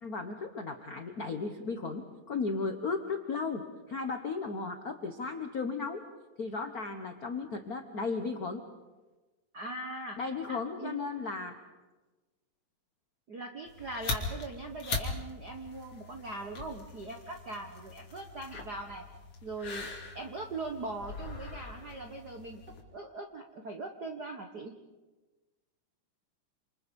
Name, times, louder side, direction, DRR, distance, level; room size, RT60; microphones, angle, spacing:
voice 1, 0.0-6.0 6.4-8.6 10.2-11.5, left 4 dB, 70° left, 6 dB, 0.8 m, -35 dB
voice 2, 9.5-10.2 10.5-11.0 13.3-19.0 19.4-22.6 22.9-24.7, right 2 dB, 60° right, 3 dB, 1.0 m, -41 dB
sound 1, 13.7-22.8, left 3 dB, 50° left, 3.7 m, -41 dB
27.5 x 27.0 x 5.4 m, 1.2 s
omnidirectional pair, 3.7 m